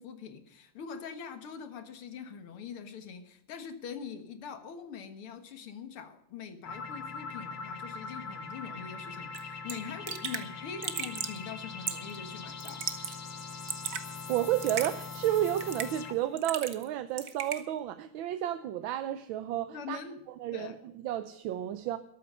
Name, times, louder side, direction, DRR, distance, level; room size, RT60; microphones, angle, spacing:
voice 1, 0.0-13.2 19.7-20.2 20.5-20.8, left 6 dB, 85° left, 2.4 m, -43 dB
sound 1, 6.7-16.4, left 4 dB, 55° left, 1.8 m, -42 dB
Raindrop / Drip, 9.3-9.4 9.7-9.8 10.1-10.5 10.8-11.4 11.9-12.2 12.6-13.2 13.4-14.0 14.6-14.9 15.6-16.0 16.4-16.9 17.2-17.6, right 7 dB, 45° right, 1.3 m, -35 dB
voice 2, 14.1-20.0 20.4-22.0, right 12 dB, 75° right, 1.4 m, -32 dB
13.5 x 12.5 x 5.5 m
omnidirectional pair, 2.3 m